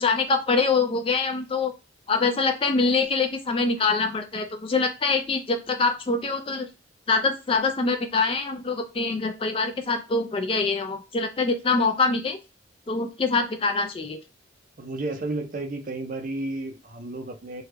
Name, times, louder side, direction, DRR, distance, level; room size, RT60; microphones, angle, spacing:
voice 1, 0.0-1.7 2.1-6.7 7.1-12.4 12.9-14.2, left 4 dB, 30° left, 5 dB, 0.3 m, -24 dB
voice 2, 14.8-17.6, right 2 dB, 45° right, 6 dB, 0.5 m, -32 dB
3.4 x 2.3 x 3.2 m, 0.28 s
head